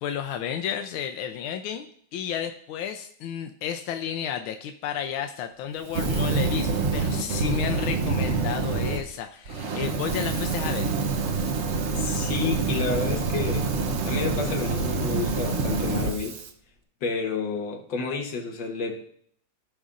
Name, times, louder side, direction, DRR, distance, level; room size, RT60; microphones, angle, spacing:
voice 1, 0.0-10.9, left 9 dB, 90° left, 6 dB, 1.4 m, -32 dB
Fire, 5.9-9.0 9.4-16.5, right 4 dB, 85° right, 0.6 m, -26 dB
voice 2, 12.0-13.7 14.0-16.4 17.0-19.0, left 4 dB, 65° left, 3 dB, 1.9 m, -30 dB
15.0 x 5.3 x 2.5 m, 0.63 s
omnidirectional pair, 2.2 m